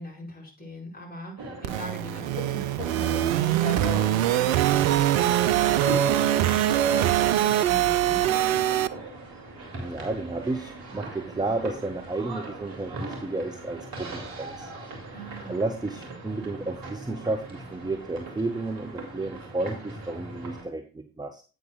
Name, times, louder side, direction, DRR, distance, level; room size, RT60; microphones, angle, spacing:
voice 1, 0.0-8.9 15.1-15.6 16.3-16.5, right 1 dB, 20° left, -3 dB, 5.0 m, -40 dB
sound 1, 1.4-20.6, right 2 dB, 55° right, 2.6 m, -39 dB
sound 2, 1.6-8.9, right 12 dB, 75° right, 0.5 m, -23 dB
voice 2, 9.7-14.7 15.5-21.4, right 2 dB, 10° right, 7 dB, 0.8 m, -32 dB
10.5 x 8.4 x 2.3 m, 0.34 s
figure-of-eight pair, 45°, 42 cm